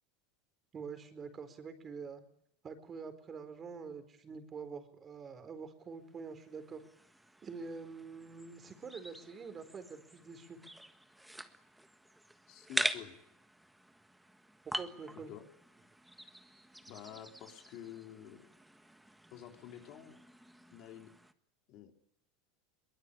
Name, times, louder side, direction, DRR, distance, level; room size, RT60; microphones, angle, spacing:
voice 1, 0.7-2.2 2.6-6.8 7.4-10.6 14.6-15.3, right 5 dB, 25° right, 9 dB, 4.3 m, -46 dB
sound 1, 6.2-21.3, right 1 dB, 5° right, 1.5 m, -44 dB
voice 2, 12.5-13.2 15.3-15.4 16.2-16.3 16.9-18.5 19.3-20.2 20.7-21.1 21.7-22.1, left 11 dB, 50° left, 4 dB, 3.5 m, -49 dB
22.5 x 20.0 x 9.9 m, 0.71 s
supercardioid pair, 125°, 0 cm